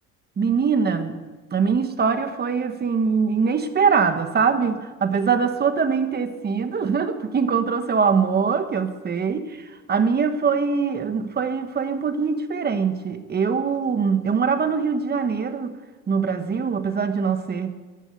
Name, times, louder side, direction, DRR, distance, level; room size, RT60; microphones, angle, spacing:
voice 1, 0.4-1.2 1.5-15.8 16.1-17.8, right 5 dB, 35° right, 9 dB, 1.4 m, -23 dB
14.5 x 10.0 x 8.0 m, 1.3 s
cardioid pair, 125°, 30 cm